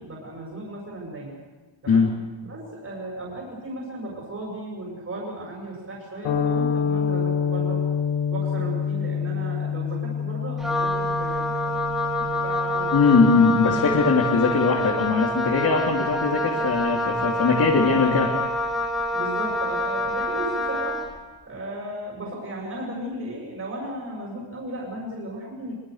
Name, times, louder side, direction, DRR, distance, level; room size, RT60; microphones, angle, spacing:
voice 1, 0.0-1.4 1.8-2.1 2.5-7.9 8.3-13.4 19.1-21.0 21.4-25.7, right 1 dB, 30° right, -3 dB, 7.0 m, -35 dB
sound 1, 6.2-14.6, left 7 dB, 90° left, 6.2 m, -28 dB
Wind instrument woodwind instrument, 10.6-21.2, left 1 dB, ahead, 2.6 m, -26 dB
voice 2, 12.9-18.3, left 4 dB, 45° left, -3 dB, 3.7 m, -20 dB
25.5 x 24.5 x 6.8 m, 1.3 s
wide cardioid pair, 160°, 49 cm